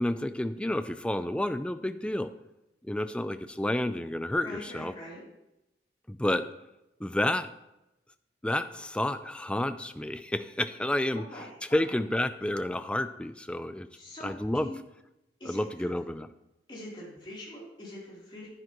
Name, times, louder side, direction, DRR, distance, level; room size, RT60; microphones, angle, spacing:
voice 1, 0.0-2.3 2.8-4.9 6.1-6.4 7.0-7.5 8.4-13.9 14.2-14.7 15.4-16.3, left 1 dB, 5° left, 11 dB, 0.4 m, -30 dB
voice 2, 4.4-5.2 11.3-11.5 13.9-14.8 15.4-15.9 16.7-18.5, left 1 dB, 25° left, -6 dB, 3.3 m, -43 dB
9.9 x 9.7 x 3.1 m, 0.90 s
head